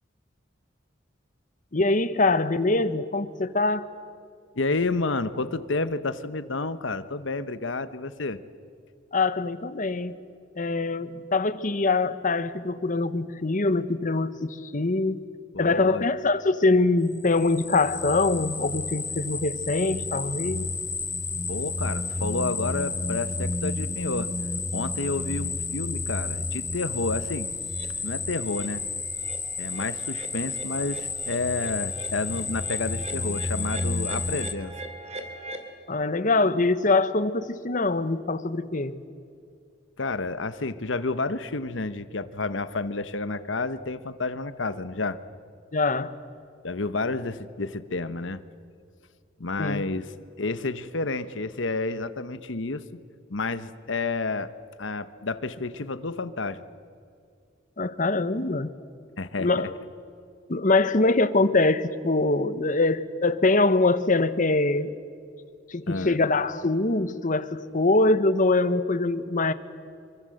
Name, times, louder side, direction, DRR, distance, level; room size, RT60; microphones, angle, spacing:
voice 1, 1.7-3.9 9.1-10.2 10.6-15.2 15.6-20.7 35.9-39.0 45.7-46.1 49.6-49.9 57.8-58.7 59.4-59.7 60.5-64.9 65.7-69.5, left 3 dB, 45° left, 13 dB, 1.1 m, -23 dB
voice 2, 4.6-8.4 15.5-16.0 21.5-24.3 24.7-27.5 28.0-28.8 29.6-34.7 40.0-45.2 46.6-48.4 49.4-50.1 50.4-52.8 53.3-54.5 54.8-56.6 59.2-59.7 65.9-66.2, left 3 dB, 70° left, 13 dB, 1.1 m, -30 dB
sound 1, 17.2-34.5, left 3 dB, 15° left, 0.9 m, -31 dB
sound 2, 27.7-27.9 28.3-28.7 29.0-35.7, right 2 dB, 35° right, 2.7 m, -42 dB
26.0 x 24.5 x 7.9 m, 2.4 s
head